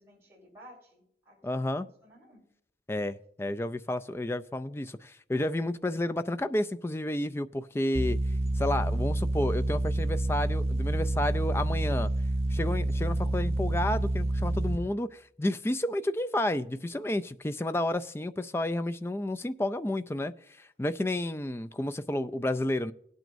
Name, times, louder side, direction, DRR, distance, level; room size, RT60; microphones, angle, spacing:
voice 1, 0.0-1.7 2.0-2.4, equal, 15° right, 4.3 m, -55 dB
voice 2, 1.4-1.9 2.9-8.2 8.6-12.1 12.5-22.9, left 1 dB, 15° left, 0.3 m, -31 dB
sound 1, 7.9-14.8, right 1 dB, 35° right, 0.7 m, -28 dB
18.5 x 9.1 x 2.6 m
head